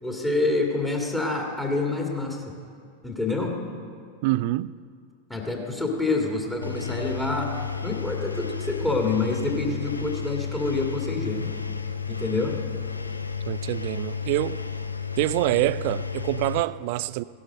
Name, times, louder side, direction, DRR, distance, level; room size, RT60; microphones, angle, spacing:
voice 1, 0.0-2.5 3.0-3.6 5.3-11.5 12.1-12.6, left 3 dB, 10° left, 2.0 m, -27 dB
voice 2, 4.2-4.7 13.5-14.6 15.2-17.2, right 18 dB, 50° right, 0.3 m, -25 dB
Engine, 6.6-16.6, left 6 dB, 80° left, 0.6 m, -32 dB
16.0 x 11.0 x 6.4 m
figure-of-eight pair, 90°, 0 cm